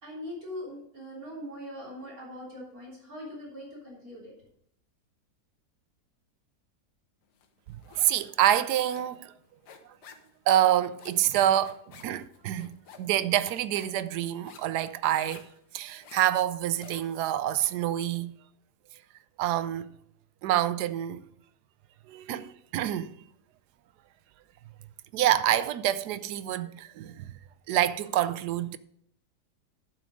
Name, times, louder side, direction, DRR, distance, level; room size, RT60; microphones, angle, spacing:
voice 1, 0.0-4.3, left 1 dB, 60° right, 3.8 m, -41 dB
sound 1, 7.4-8.3 8.6-17.9, left 6 dB, 85° left, 1.6 m, -52 dB
voice 2, 7.7-9.3 10.5-15.5 15.7-18.3 19.4-19.9 20.4-21.2 22.1-23.2 25.1-27.4 27.7-28.8, right 12 dB, 80° right, 1.1 m, -27 dB
11.0 x 6.1 x 5.0 m
omnidirectional pair, 1.7 m